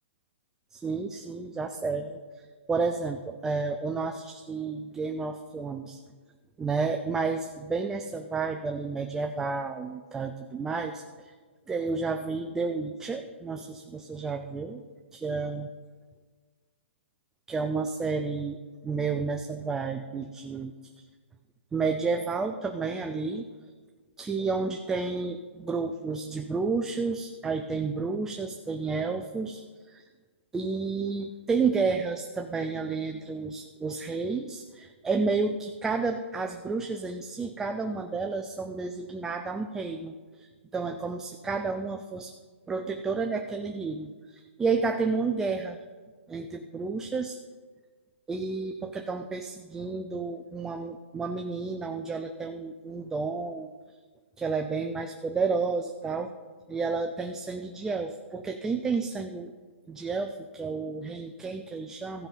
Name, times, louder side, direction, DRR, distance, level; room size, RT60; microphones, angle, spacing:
voice 1, 0.7-6.0 6.6-11.3 11.7-14.8 15.1-15.7 17.5-18.6 18.8-21.0 21.7-23.5 24.2-30.0 30.5-42.3 42.7-45.8 46.3-47.4 48.3-53.7 54.4-56.3 56.7-59.5 59.9-62.3, right 4 dB, 5° right, 5 dB, 0.3 m, -31 dB
15.0 x 5.3 x 5.7 m, 1.4 s
hypercardioid pair, 155°, 7 cm